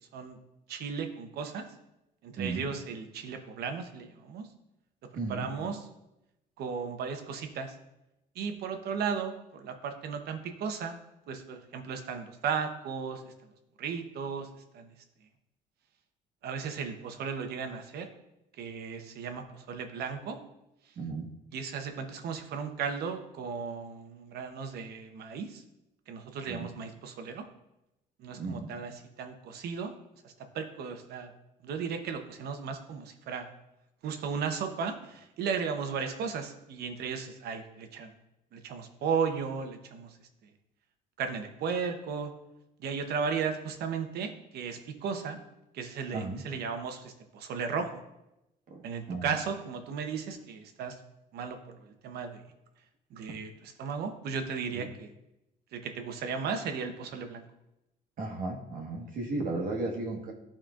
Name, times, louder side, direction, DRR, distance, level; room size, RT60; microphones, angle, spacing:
voice 1, 0.7-1.6 2.2-4.5 5.3-5.8 6.6-7.7 8.3-10.9 11.3-13.2 13.8-14.5 14.7-14.9 16.4-18.1 18.6-20.4 21.5-25.6 26.1-27.4 28.2-29.9 30.2-31.3 31.6-33.5 34.0-38.1 38.5-40.2 41.2-42.3 42.8-45.4 45.7-48.0 48.8-51.0 51.3-52.4 53.1-55.1 55.7-57.4, right 6 dB, 70° right, 6 dB, 0.9 m, -35 dB
voice 2, 5.2-5.5 21.0-21.3 26.5-26.7 28.4-28.7 46.1-46.4 48.7-48.8 49.1-49.4 54.7-54.9 58.2-60.3, right 3 dB, 55° right, 1 dB, 1.3 m, -34 dB
11.5 x 4.3 x 2.4 m, 0.90 s
cardioid pair, 110°, 17 cm